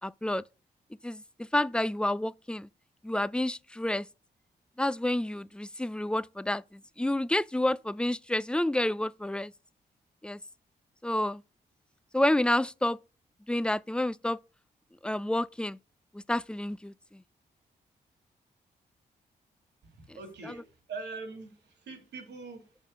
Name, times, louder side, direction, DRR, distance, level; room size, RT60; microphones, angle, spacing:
voice 1, 0.0-0.4 1.0-2.7 3.0-4.1 4.8-9.5 10.2-10.4 11.0-11.4 12.1-13.0 13.5-14.4 15.0-15.8 16.3-16.9, left 1 dB, 5° left, 0.4 m, -29 dB
voice 2, 19.8-22.8, right 4 dB, 85° right, 2.6 m, -43 dB
6.7 x 5.4 x 6.2 m
supercardioid pair, 55°, 18 cm